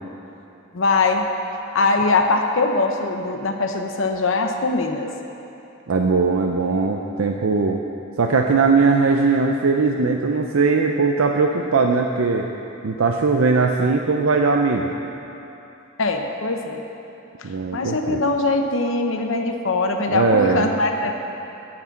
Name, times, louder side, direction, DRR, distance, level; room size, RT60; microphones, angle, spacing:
voice 1, 0.7-1.2 1.7-5.1 16.0-16.8 17.4-21.1, left 3 dB, 65° left, 4 dB, 0.8 m, -22 dB
voice 2, 5.9-7.8 8.2-12.5 12.8-14.9 17.4-18.2 20.1-20.7, right 4 dB, 70° right, 2 dB, 0.5 m, -19 dB
11.0 x 6.0 x 8.5 m, 2.9 s
head